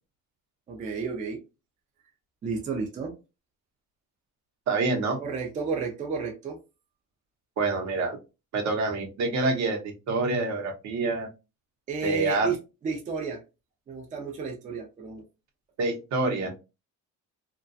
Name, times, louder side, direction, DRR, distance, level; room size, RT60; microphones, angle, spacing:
voice 1, 0.7-1.4 2.4-3.1 5.2-6.6 11.9-12.6 12.8-13.4 13.9-15.2, right 5 dB, 25° right, 2 dB, 0.4 m, -31 dB
voice 2, 4.7-5.2 7.6-8.2 8.5-11.3 12.0-12.5 15.8-16.5, right 3 dB, 60° right, 3 dB, 0.8 m, -27 dB
2.3 x 2.2 x 2.5 m, 0.28 s
cardioid pair, 160°, 33 cm